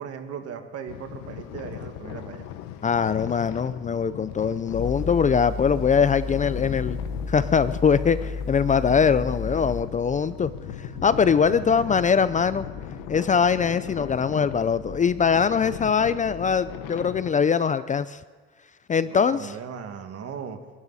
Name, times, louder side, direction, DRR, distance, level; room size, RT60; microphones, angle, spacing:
voice 1, 0.0-2.5 9.2-9.3 11.4-12.0 19.0-20.6, right 7 dB, 55° right, 6 dB, 2.0 m, -38 dB
sound 1, 0.9-17.3, left 12 dB, 85° left, 1.1 m, -38 dB
voice 2, 2.8-7.0 7.3-10.5 11.0-12.7 13.1-18.2 18.9-19.5, left 6 dB, 25° left, 14 dB, 0.5 m, -22 dB
sound 2, 4.7-9.8, left 3 dB, 70° left, 3.2 m, -32 dB
sound 3, 8.9-17.2, right 2 dB, 20° right, 4.6 m, -45 dB
28.5 x 12.0 x 4.2 m, 1.5 s
cardioid pair, 105°, 29 cm